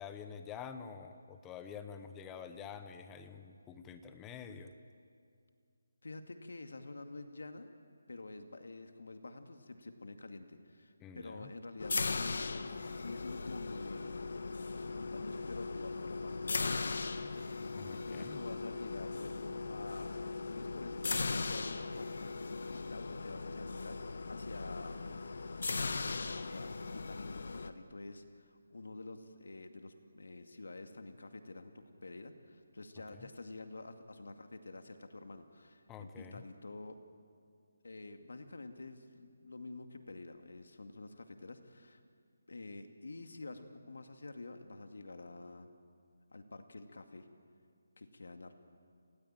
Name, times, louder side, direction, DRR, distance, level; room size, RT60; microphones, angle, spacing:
voice 1, 0.0-4.7 11.0-11.5 17.7-18.4 33.2-33.3 35.9-36.4, left 7 dB, 10° left, 8 dB, 0.8 m, -48 dB
voice 2, 6.0-7.7 8.1-14.2 14.7-25.0 26.0-37.0 37.8-42.0 42.5-45.7 46.3-47.3 48.0-48.5, left 2 dB, 85° left, 6 dB, 2.3 m, -49 dB
sound 1, 11.8-27.7, left 3 dB, 60° left, 1.3 m, -38 dB
29.5 x 18.0 x 9.1 m, 2.2 s
hypercardioid pair, 175°, 0 cm